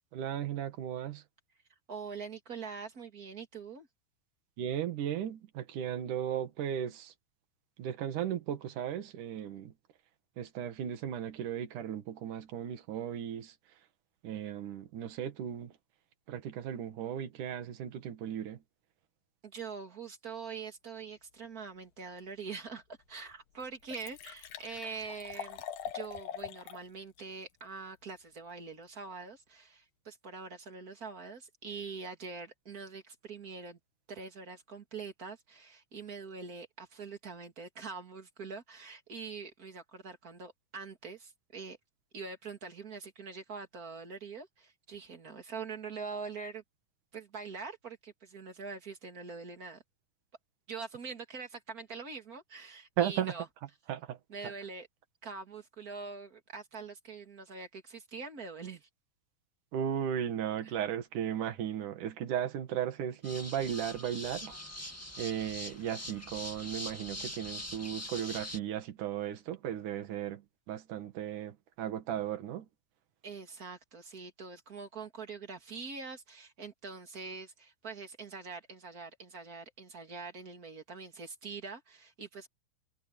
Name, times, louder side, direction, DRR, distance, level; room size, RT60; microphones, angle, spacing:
voice 1, 0.1-1.2 4.6-7.1 7.8-9.7 10.4-13.5 14.2-15.7 16.3-18.6 53.0-53.3 53.9-54.2 59.7-64.5 65.2-70.4 70.7-72.7, right 9 dB, 65° right, 3.2 m, -36 dB
voice 2, 1.9-3.9 19.4-22.8 23.1-25.6 25.9-33.8 34.1-41.8 42.1-46.6 47.1-49.8 50.7-53.5 54.3-54.9 55.2-58.9 60.6-60.7 73.2-82.5, right 5 dB, 30° right, 2.7 m, -44 dB
Liquid, 22.7-22.8 23.3-23.4 23.6-26.8 27.2-27.3, left 10 dB, 70° left, 2.5 m, -43 dB
sound 1, 63.2-68.6, left 1 dB, 10° left, 0.8 m, -43 dB
omnidirectional pair, 4.0 m